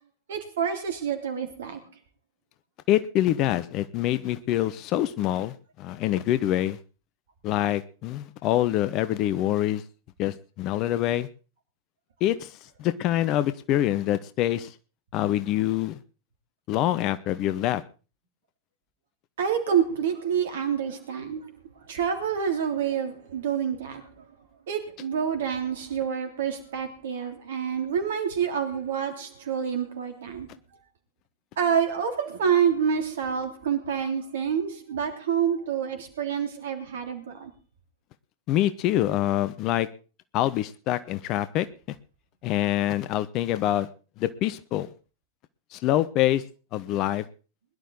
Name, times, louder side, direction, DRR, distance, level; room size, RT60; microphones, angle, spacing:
voice 1, 0.3-1.8 19.4-21.5 21.9-24.1 24.7-30.5 31.6-37.5, right 7 dB, 60° right, 6 dB, 3.2 m, -27 dB
voice 2, 2.9-6.8 7.4-9.8 10.2-11.3 12.2-14.7 15.1-16.0 16.7-17.8 38.5-39.9 40.3-42.0 42.4-43.9 44.2-44.9 45.7-46.4 46.7-47.2, left 13 dB, 40° left, 14 dB, 0.9 m, -25 dB
21.0 x 11.5 x 3.9 m, 0.36 s
figure-of-eight pair, 90°, 0 cm